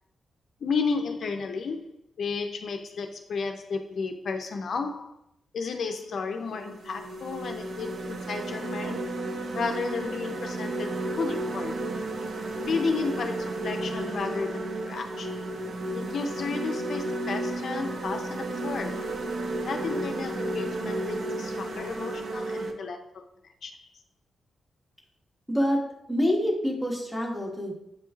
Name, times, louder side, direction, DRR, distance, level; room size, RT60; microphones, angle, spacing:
voice 1, 0.6-1.9 2.2-5.2 5.5-9.1 9.5-11.8 12.7-15.5 15.9-19.1 19.6-23.2 23.6-23.9, left 4 dB, 65° left, 5 dB, 0.4 m, -33 dB
sound 1, 5.8-6.0 6.5-22.7, right 2 dB, 75° right, 0.5 m, -33 dB
voice 2, 25.5-25.8 26.1-27.7, equal, 5° right, -1 dB, 1.0 m, -26 dB
7.7 x 3.0 x 2.3 m, 0.79 s
wide cardioid pair, 115°, 0 cm